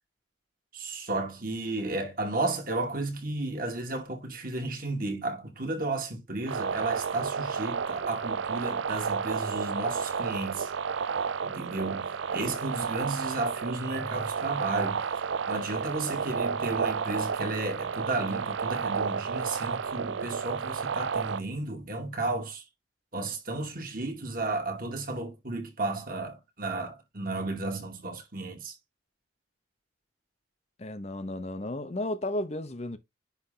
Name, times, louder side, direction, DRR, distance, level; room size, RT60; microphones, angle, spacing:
voice 1, 0.7-10.7 11.4-15.0 15.5-22.6 23.1-28.7, right 2 dB, 45° right, 2.4 m, -33 dB
sound 1, 6.5-21.4, right 6 dB, 70° right, 0.5 m, -31 dB
voice 2, 30.8-33.0, left 1 dB, 35° left, 0.7 m, -33 dB
9.9 x 3.3 x 3.9 m
head